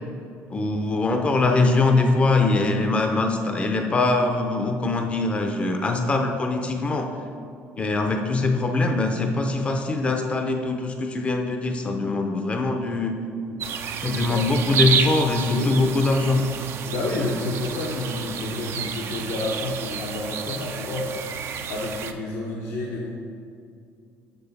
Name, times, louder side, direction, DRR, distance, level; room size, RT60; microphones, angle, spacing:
voice 1, 0.5-7.1 7.8-13.1 14.0-16.4, left 3 dB, 20° left, 4 dB, 0.6 m, -22 dB
sound 1, 13.6-22.1, right 7 dB, 50° right, 0.5 m, -30 dB
voice 2, 14.0-14.4 15.4-15.8 16.9-21.1 21.7-23.1, left 2 dB, 70° left, -3 dB, 0.9 m, -30 dB
6.9 x 6.2 x 4.1 m, 2.4 s
cardioid pair, 120°, 5 cm